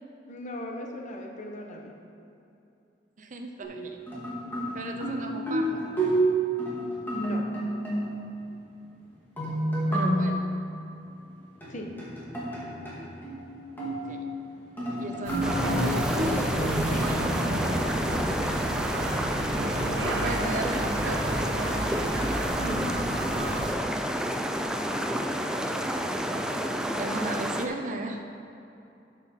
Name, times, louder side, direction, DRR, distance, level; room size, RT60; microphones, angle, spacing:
voice 1, 0.3-1.9 7.1-7.5 11.7-12.0 16.9-17.1 17.8-18.8 22.6-22.9, left 1 dB, 45° left, 1 dB, 1.1 m, -38 dB
voice 2, 3.2-4.0 4.7-6.0 9.9-10.5 14.1-14.3 15.0-17.7 20.0-21.3 24.8-25.1 25.5-25.9 26.9-28.2, right 2 dB, 45° right, 4 dB, 0.7 m, -37 dB
sound 1, 3.6-8.4 9.4-10.5 11.6-14.3 14.8-16.7, right 1 dB, 10° left, 2.3 m, -29 dB
sound 2, 15.2-23.7, right 1 dB, 85° right, 1.1 m, -30 dB
sound 3, 15.4-27.7, equal, 5° right, 0.5 m, -30 dB
12.5 x 5.7 x 4.4 m, 2.7 s
head